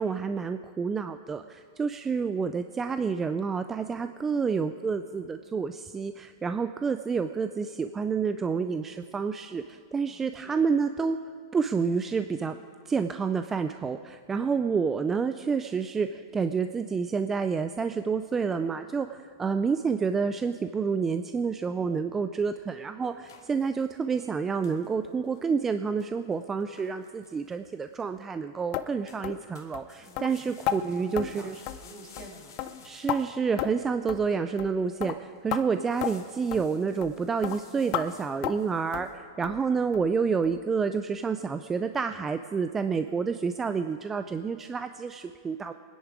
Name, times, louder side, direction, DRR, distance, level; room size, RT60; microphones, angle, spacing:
voice 1, 0.0-11.2 11.5-12.6 12.9-31.5 32.8-45.7, right 5 dB, 15° right, 9 dB, 0.3 m, -29 dB
voice 2, 10.0-10.7 30.0-32.6, right 2 dB, 35° right, -1 dB, 2.2 m, -50 dB
sound 1, 23.0-24.3 24.6-24.9 25.2-25.7 26.0-28.1 29.1-29.3 29.5-33.4 34.0-34.1 34.6-34.8 35.1-35.4 35.7-39.2, left 7 dB, 80° left, 2.3 m, -56 dB
sound 2, 28.7-28.9 29.2-29.4 29.7-29.9 30.2-30.3 30.7-30.8 31.2-31.3 31.7-31.9 32.2-32.3 32.6-33.2 33.6-33.8 34.1-34.2 34.6-34.7 35.0-35.2 35.5-35.6 36.0-36.1 36.5-36.6 37.0-37.2 37.4-37.6 37.9-38.1 38.4-38.6 38.9-39.1 39.4-39.6 39.9-40.0 40.4-40.5 40.9-41.0, left 13 dB, 40° left, 0.6 m, -32 dB
23.0 x 10.0 x 4.8 m, 2.1 s
supercardioid pair, 150°, 2 cm